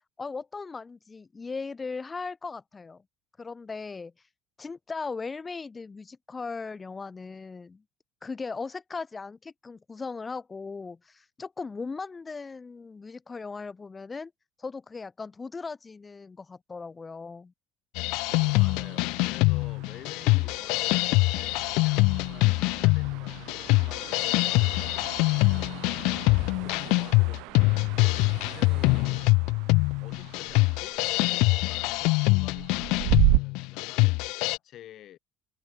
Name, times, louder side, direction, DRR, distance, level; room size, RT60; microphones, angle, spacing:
voice 1, 0.2-3.0 3.4-4.1 4.6-7.8 8.2-14.3 14.6-17.5, left 4 dB, 15° left, 1.1 m, -38 dB
sound 1, 18.0-34.6, left 26 dB, 75° left, 0.6 m, -24 dB
sound 2, 18.3-33.4, right 26 dB, 75° right, 2.3 m, -34 dB
voice 2, 18.6-25.8 26.6-28.1 28.4-29.2 30.0-35.2, left 12 dB, 45° left, 3.4 m, -49 dB
cardioid pair, 155°, 0 cm